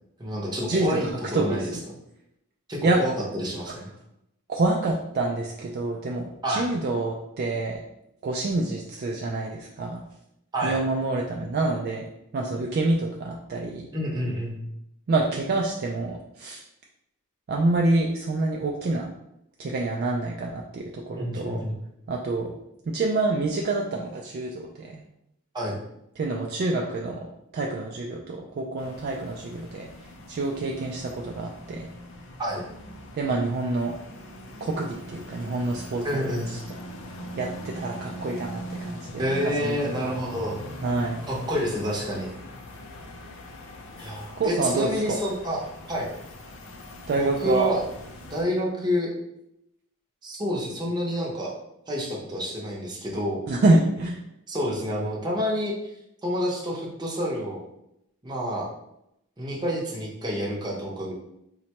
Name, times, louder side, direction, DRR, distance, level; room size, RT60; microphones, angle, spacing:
voice 1, 0.2-1.8 2.7-3.9 6.4-6.7 10.5-10.8 13.9-14.6 21.2-21.8 25.5-25.8 32.4-32.6 36.0-36.6 39.2-40.6 41.3-42.3 44.0-46.1 47.2-47.8 48.3-49.1 50.2-51.5 51.9-53.4 54.5-55.7 56.2-57.6 58.2-58.7 59.4-61.1, equal, 20° right, -3 dB, 0.7 m, -28 dB
voice 2, 1.3-1.7 2.8-3.0 4.5-7.8 8.2-10.0 10.6-12.0 12.3-13.8 15.1-16.6 17.5-19.1 19.6-21.6 22.1-22.5 22.9-25.0 26.2-27.3 27.5-29.9 30.3-31.9 33.1-33.9 34.6-36.6 37.4-39.2 39.6-40.0 40.8-41.2 44.4-45.2 47.1-47.7 53.5-54.2, right 2 dB, 45° right, -1 dB, 0.3 m, -27 dB
sound 1, 28.8-48.4, equal, 60° left, 0.5 m, -41 dB
3.9 x 2.1 x 2.9 m, 0.80 s
head